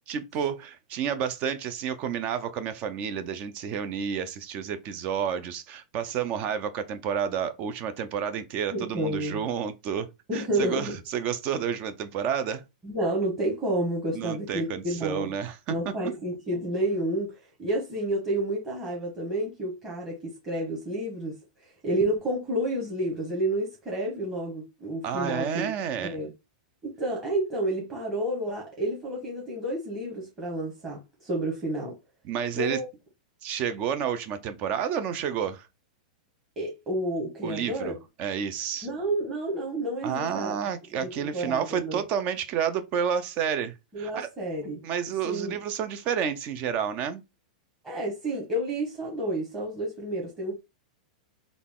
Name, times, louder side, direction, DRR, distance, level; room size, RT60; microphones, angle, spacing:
voice 1, 0.1-12.6 14.1-15.8 25.0-26.2 32.2-32.8 33.4-35.7 37.4-38.9 40.0-44.3 44.8-47.2, right 8 dB, 30° right, 0.4 m, -30 dB
voice 2, 8.7-9.4 10.3-10.9 12.8-15.3 15.7-17.3 17.6-21.3 21.8-25.7 26.0-26.3 26.8-31.9 32.5-32.8 36.6-38.0 38.8-40.5 41.0-42.0 43.9-44.8 45.2-45.5 47.8-50.5, right 1 dB, 15° right, 1.1 m, -30 dB
3.9 x 2.3 x 3.5 m
supercardioid pair, 160°, 4 cm